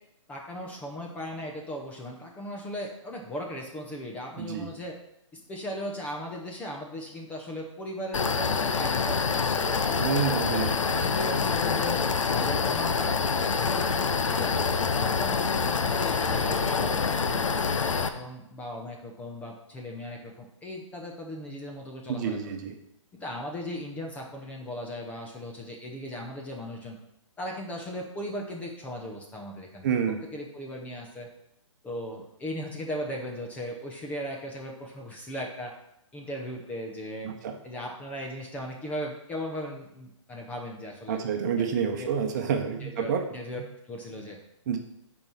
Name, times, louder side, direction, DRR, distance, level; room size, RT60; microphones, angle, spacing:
voice 1, 0.3-5.0 5.3-10.3 10.8-14.5 15.0-22.5 23.1-27.0 27.4-29.9 30.3-31.3 31.8-35.7 36.1-37.3 37.6-41.2 41.6-41.7 41.9-42.1 42.8-44.4, equal, 10° left, 0 dB, 0.8 m, -38 dB
voice 2, 4.4-4.7 10.0-10.8 22.1-22.7 29.8-30.2 37.2-37.6 41.1-43.2 44.7-44.8, right 7 dB, 35° right, 4 dB, 1.0 m, -28 dB
sound 1, 8.1-18.1, left 5 dB, 75° left, 0.8 m, -26 dB
8.7 x 4.7 x 5.6 m, 0.80 s
hypercardioid pair, 150°, 16 cm